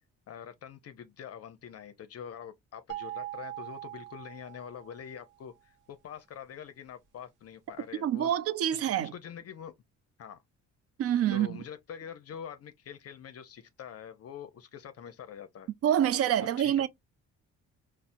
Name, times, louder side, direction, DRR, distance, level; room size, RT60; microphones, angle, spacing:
voice 1, 0.3-8.4 8.7-9.7 10.2-10.4 11.3-15.7 16.6-16.9, left 8 dB, 55° left, 0.5 m, -45 dB
sound 1, 2.9-5.1, right 15 dB, 90° right, 0.7 m, -41 dB
voice 2, 8.0-9.1 11.0-11.5 15.8-16.9, right 10 dB, 50° right, 0.4 m, -26 dB
4.1 x 2.0 x 2.5 m
cardioid pair, 90°, 30 cm